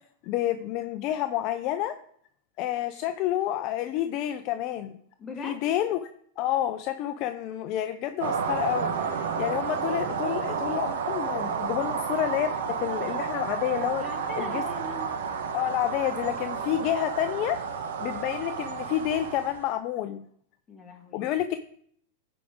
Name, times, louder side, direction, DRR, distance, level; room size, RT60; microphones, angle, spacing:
voice 1, 0.2-1.9 2.6-5.0 5.4-6.0 6.4-12.5 12.8-14.0 14.4-14.6 15.5-17.6 18.0-20.2 21.1-21.6, left 12 dB, 40° left, 8 dB, 0.5 m, -29 dB
voice 2, 5.2-5.7 14.0-15.1 20.7-21.3, left 2 dB, 15° left, 1 dB, 1.5 m, -40 dB
sound 1, 8.2-19.7, right 6 dB, 75° right, 1.1 m, -31 dB
15.0 x 5.0 x 3.6 m, 0.63 s
supercardioid pair, 145°, 0 cm